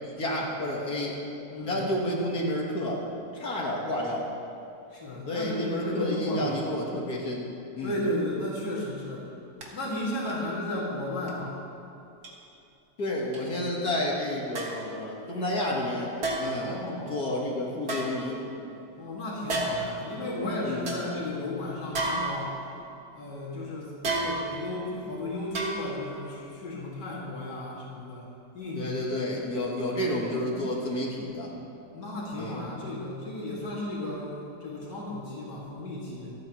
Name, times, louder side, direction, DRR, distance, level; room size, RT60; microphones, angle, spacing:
voice 1, 0.0-1.2 1.6-3.0 3.3-4.2 5.3-7.4 7.8-7.9 13.0-16.1 16.4-16.8 17.1-18.4 20.7-20.8 28.8-31.5 32.3-32.6, left 1 dB, 65° left, -3 dB, 2.1 m, -30 dB
voice 2, 1.5-1.8 4.9-6.6 7.8-9.3 9.7-11.6 16.5-17.2 19.0-22.6 23.1-28.3 28.5-29.4 30.5-30.6 31.9-36.4, left 1 dB, 85° left, -6 dB, 2.7 m, -34 dB
sound 1, 9.6-9.7 10.2-10.5 11.2-11.3 12.2-12.3 13.3-13.4 14.5-14.9 16.2-16.7 17.8-18.7 19.5-20.0 20.4-20.5 20.9-21.0 21.9-22.8 24.0-24.7 25.5-26.1 26.5-26.6, right 2 dB, 70° right, 2.2 m, -31 dB
26.5 x 9.1 x 3.0 m, 2.8 s
omnidirectional pair, 1.8 m